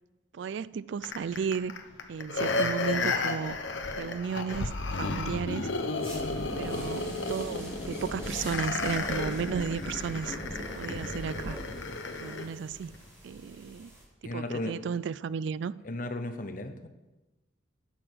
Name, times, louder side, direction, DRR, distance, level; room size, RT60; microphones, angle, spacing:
voice 1, 0.3-1.7 2.1-3.6 4.0-4.7 5.0-5.7 6.6-10.4 10.7-11.6 12.2-13.0 13.2-13.9 14.2-15.7, right 6 dB, 65° right, 19 dB, 0.3 m, -34 dB
sound 1, 1.0-12.5 12.9-13.0, left 3 dB, 70° left, 1.0 m, -33 dB
sound 2, 6.0-14.0, equal, 15° right, 4.5 m, -40 dB
voice 2, 14.2-14.7 15.8-16.9, left 1 dB, 45° left, 8 dB, 0.9 m, -35 dB
11.5 x 7.8 x 6.2 m, 1.1 s
head